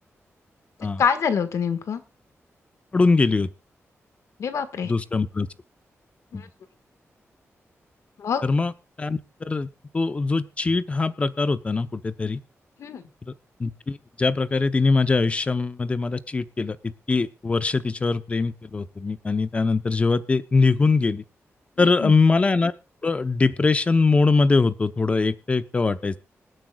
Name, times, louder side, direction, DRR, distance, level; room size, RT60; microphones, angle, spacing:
voice 1, 1.0-2.0 4.4-4.9 6.3-6.5 8.2-8.4 12.8-13.1 21.8-22.1, left 6 dB, 85° left, 10 dB, 1.6 m, -25 dB
voice 2, 2.9-3.5 4.8-5.5 6.3-6.4 8.4-8.7 9.0-9.7 9.9-12.4 13.6-16.8 17.1-21.2 21.8-22.7 23.0-26.2, left 3 dB, 25° left, 12 dB, 0.7 m, -22 dB
26.0 x 9.0 x 2.3 m, 0.27 s
wide cardioid pair, 165°, 5 cm